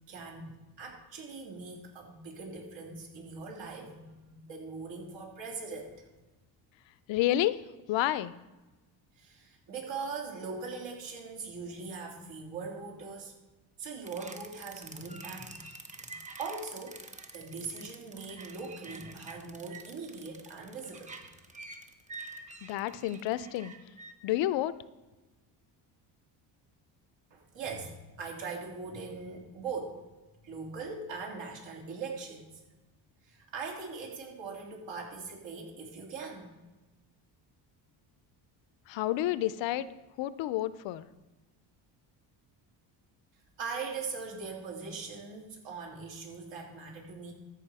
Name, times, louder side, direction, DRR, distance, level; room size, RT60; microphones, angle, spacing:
voice 1, 0.1-6.1 9.2-13.3 13.8-15.7 15.9-16.1 16.4-17.0 17.3-21.1 27.3-30.0 30.4-32.5 33.2-36.5 43.6-47.3, right 4 dB, 70° right, 0 dB, 3.0 m, -41 dB
voice 2, 7.1-7.6 7.9-8.3 22.6-23.7 24.2-24.8 38.9-39.9 40.2-41.1, left 14 dB, 70° left, 16 dB, 0.6 m, -30 dB
sound 1, 14.0-24.1, right 3 dB, 15° right, 1.0 m, -47 dB
14.0 x 5.0 x 4.8 m, 1.1 s
cardioid pair, 100°, 46 cm